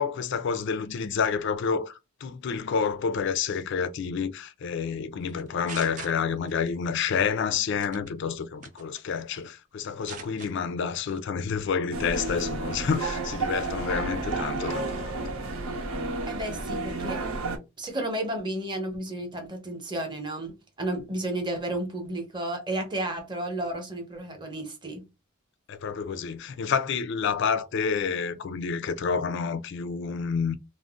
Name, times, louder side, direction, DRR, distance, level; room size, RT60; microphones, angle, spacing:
voice 1, 0.0-1.9 2.2-15.2 25.7-30.6, left 6 dB, 55° left, 0.4 m, -29 dB
sound 1, 5.3-6.7 7.0-7.3 7.8-8.1 8.6-9.5 9.8-10.5 10.9-11.2, right 6 dB, 35° right, 0.4 m, -42 dB
sound 2, 11.9-17.6, right 3 dB, 80° right, 0.8 m, -31 dB
voice 2, 16.3-17.2 17.8-25.0, right 1 dB, 20° right, 0.7 m, -32 dB
2.5 x 2.0 x 3.4 m
head